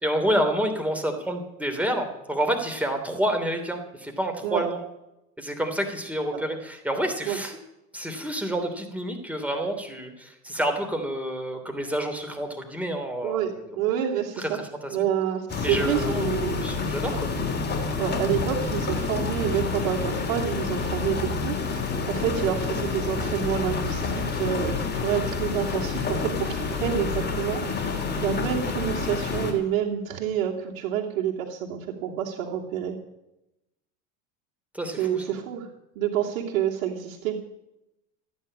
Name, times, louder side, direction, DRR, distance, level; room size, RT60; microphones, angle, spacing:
voice 1, 0.0-4.8 5.4-7.6 7.9-13.8 14.4-15.0 15.6-17.3 34.7-35.2, right 1 dB, 5° right, 4 dB, 3.1 m, -29 dB
voice 2, 13.2-14.6 14.9-16.8 18.0-33.0 35.0-35.7 35.9-37.4, right 9 dB, 75° right, -3 dB, 2.9 m, -28 dB
sound 1, 15.5-29.5, left 4 dB, 25° left, 3.5 m, -28 dB
14.5 x 10.0 x 8.7 m, 0.89 s
supercardioid pair, 100°, 40 cm